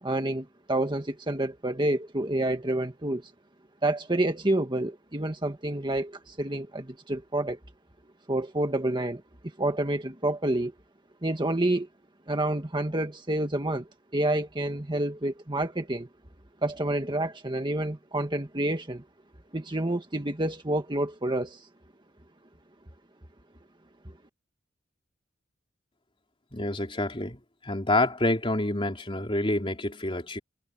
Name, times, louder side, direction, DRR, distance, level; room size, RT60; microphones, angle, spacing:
voice 1, 0.0-3.2 3.8-7.6 8.3-9.2 9.6-10.7 11.2-11.9 12.3-13.9 14.1-16.1 16.6-19.0 19.5-21.6, right 1 dB, 25° right, 1.7 m, -28 dB
voice 2, 26.5-27.4 27.6-30.4, left 2 dB, 25° left, 3.7 m, -27 dB
head